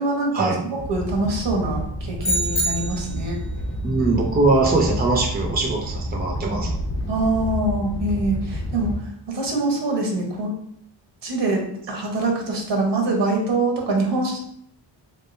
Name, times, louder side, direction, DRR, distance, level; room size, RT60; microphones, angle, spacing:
voice 1, 0.0-3.4 7.1-8.9 9.3-10.5 11.2-14.4, right 2 dB, 70° right, 0 dB, 1.2 m, -24 dB
Animal, 0.8-8.9, equal, 90° left, 1.3 m, -29 dB
sound 1, 2.2-3.3, right 1 dB, 25° left, 1.0 m, -25 dB
voice 2, 3.8-6.7, right 3 dB, 20° right, 0 dB, 0.6 m, -21 dB
3.7 x 3.6 x 2.6 m, 0.68 s
wide cardioid pair, 115°, 44 cm